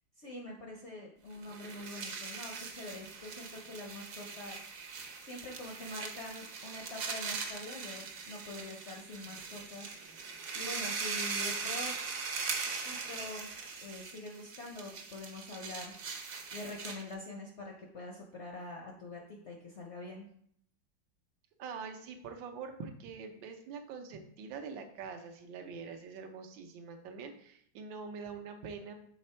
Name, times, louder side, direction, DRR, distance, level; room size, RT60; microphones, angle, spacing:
voice 1, 0.2-4.6 5.2-10.0 10.5-11.9 12.8-13.5 13.8-16.0 16.5-20.3, left 2 dB, 55° left, 0 dB, 0.8 m, -45 dB
sound 1, 1.4-17.1, right 5 dB, 55° right, 1.1 m, -40 dB
voice 2, 21.6-28.9, right 5 dB, 80° right, 5 dB, 1.5 m, -44 dB
6.4 x 4.1 x 4.3 m, 0.66 s
omnidirectional pair, 2.1 m